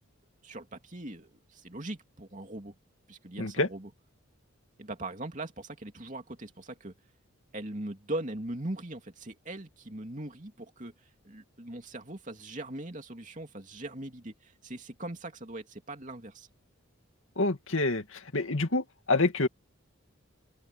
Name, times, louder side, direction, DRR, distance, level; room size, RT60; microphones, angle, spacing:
voice 1, 0.4-2.7 3.1-3.9 4.8-6.9 7.5-10.9 11.2-16.5, right 1 dB, 35° right, 2.8 m, -40 dB
voice 2, 3.4-3.7 17.4-19.5, left 2 dB, 70° left, 2.3 m, -27 dB
open air
head